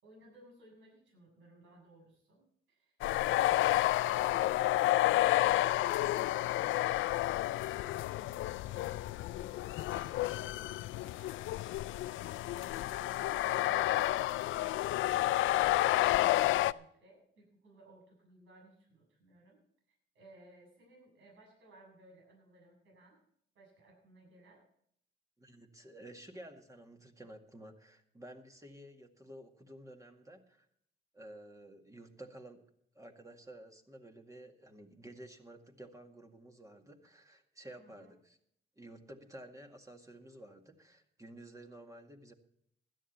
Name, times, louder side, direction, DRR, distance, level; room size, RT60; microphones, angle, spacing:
voice 1, 0.0-19.6 20.1-23.2 23.5-24.6 37.8-38.1, right 2 dB, 75° right, -1 dB, 7.1 m, -60 dB
sound 1, 3.0-16.7, left 15 dB, 80° left, 0.4 m, -30 dB
voice 2, 25.4-30.7 31.1-32.6 32.9-38.4 38.8-42.3, right 1 dB, 15° right, 4 dB, 2.0 m, -52 dB
16.5 x 12.0 x 4.3 m, 0.68 s
cardioid pair, 90°, 20 cm